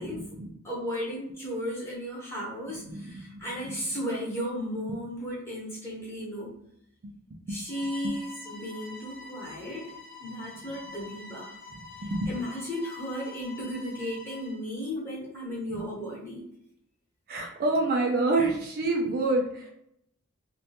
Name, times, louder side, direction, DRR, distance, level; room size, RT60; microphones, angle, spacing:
voice 1, 0.0-0.5 2.9-3.5 7.5-7.6 12.0-12.3 17.3-19.7, right 2 dB, 45° right, 0 dB, 0.4 m, -27 dB
voice 2, 0.6-6.6 7.5-9.9 10.2-11.5 12.3-16.5, equal, 10° left, -6 dB, 1.0 m, -35 dB
Bowed string instrument, 7.7-14.6, left 3 dB, 40° left, 0.5 m, -46 dB
2.3 x 2.1 x 2.8 m, 0.74 s
head